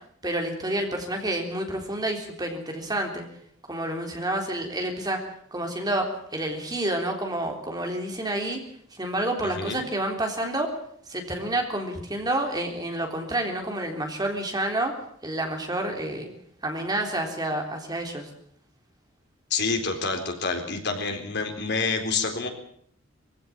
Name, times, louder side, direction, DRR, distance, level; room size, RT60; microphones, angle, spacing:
voice 1, 0.2-3.2 3.7-5.2 5.5-8.6 8.9-10.7 11.1-14.9 15.2-16.3 16.6-18.3, right 1 dB, 20° right, 3 dB, 3.6 m, -29 dB
voice 2, 9.4-9.8 19.5-22.5, left 4 dB, 55° left, 4 dB, 4.0 m, -28 dB
22.5 x 16.0 x 8.8 m, 0.66 s
head